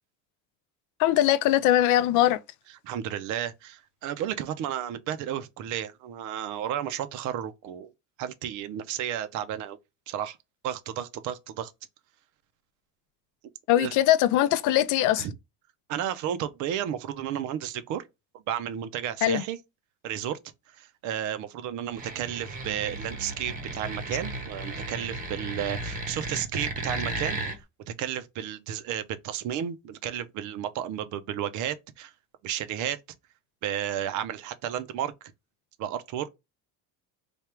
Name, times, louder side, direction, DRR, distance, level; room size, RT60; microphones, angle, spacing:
voice 1, 1.0-2.4 13.7-15.3 19.2-19.4, left 13 dB, 60° left, 0.4 m, -21 dB
voice 2, 2.8-7.9 8.2-9.8 10.1-10.4 10.6-11.7 13.8-14.0 15.2-15.3 15.9-18.1 18.5-19.6 20.0-20.4 20.7-27.4 27.9-32.1 32.4-33.0 33.6-35.1 35.8-36.3, right 10 dB, 55° right, 0.6 m, -32 dB
sound 1, 21.9-27.6, right 2 dB, 25° right, 0.8 m, -35 dB
3.4 x 2.4 x 4.4 m
cardioid pair, 160°, 36 cm